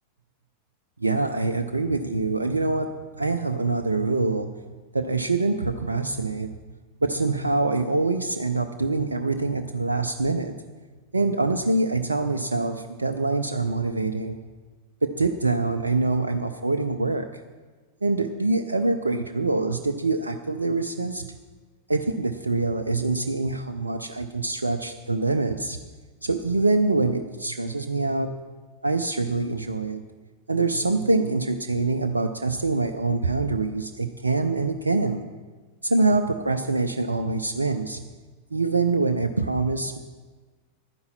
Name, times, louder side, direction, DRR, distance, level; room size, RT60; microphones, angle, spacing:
voice 1, 1.0-2.9 3.2-4.5 4.9-6.5 7.0-10.5 11.1-14.4 15.0-17.4 18.0-21.3 21.9-25.8 26.2-28.3 28.8-30.0 30.5-35.2 35.8-38.1 38.5-40.0, right 3 dB, 80° right, 7 dB, 0.5 m, -25 dB
11.5 x 9.5 x 5.8 m, 1.4 s
figure-of-eight pair, 90°, 0 cm